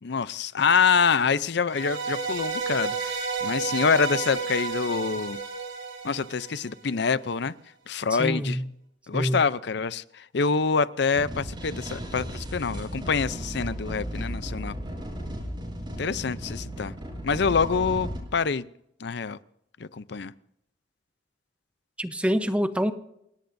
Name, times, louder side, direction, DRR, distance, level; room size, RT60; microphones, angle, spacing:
voice 1, 0.0-5.4 6.0-7.5 7.9-8.6 9.1-14.7 16.0-16.9 17.2-18.7 19.0-19.4 19.8-20.3, left 5 dB, 65° left, 16 dB, 0.6 m, -26 dB
sound 1, 1.7-6.9, right 4 dB, 80° right, 3.4 m, -31 dB
voice 2, 8.1-8.7 9.1-9.4 22.0-22.9, equal, 5° right, 10 dB, 0.8 m, -26 dB
sound 2, 11.1-18.2, equal, 25° right, 5.5 m, -35 dB
29.0 x 17.5 x 2.7 m, 0.78 s
head